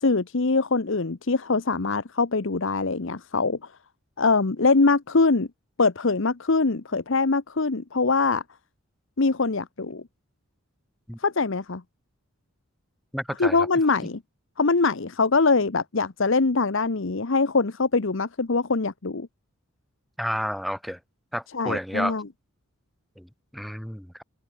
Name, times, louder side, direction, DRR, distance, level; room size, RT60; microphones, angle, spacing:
voice 1, 0.0-3.6 4.2-5.5 5.8-8.4 9.2-10.0 11.2-11.8 13.4-14.2 14.6-19.3 21.5-22.3, left 3 dB, 55° left, 0.8 m, -23 dB
voice 2, 13.1-13.6 20.2-21.0 21.3-22.2 23.2-23.3 23.5-24.2, equal, ahead, 0.5 m, -30 dB
head